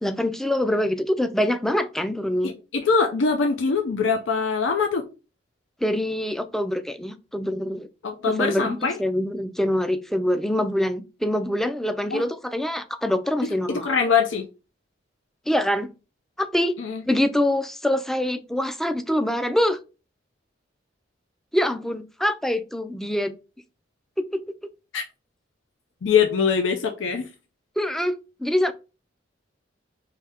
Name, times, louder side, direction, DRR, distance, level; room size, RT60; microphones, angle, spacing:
voice 1, 0.0-2.5 5.8-7.9 8.3-13.9 15.5-15.9 16.4-16.8 17.1-19.8 21.5-23.3 24.2-24.4 27.8-28.7, left 1 dB, ahead, 9 dB, 0.3 m, -24 dB
voice 2, 2.4-5.0 8.0-9.0 12.1-12.3 13.4-14.5 16.8-17.0 24.9-25.0 26.0-27.3, left 5 dB, 85° left, 4 dB, 0.5 m, -23 dB
4.8 x 2.7 x 3.3 m, 0.30 s
head